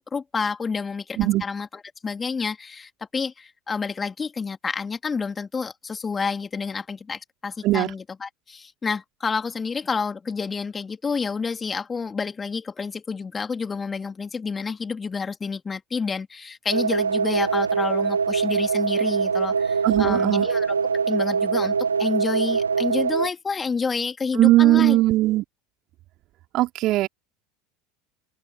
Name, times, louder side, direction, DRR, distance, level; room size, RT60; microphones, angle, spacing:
voice 1, 0.0-20.8 21.1-25.0, left 5 dB, 20° left, 3.6 m, -29 dB
sound 1, 16.7-23.3, right 5 dB, 80° right, 1.4 m, -23 dB
voice 2, 19.8-20.5 24.3-25.4 26.5-27.1, right 16 dB, 45° right, 3.3 m, -19 dB
figure-of-eight pair, 75°, 0 cm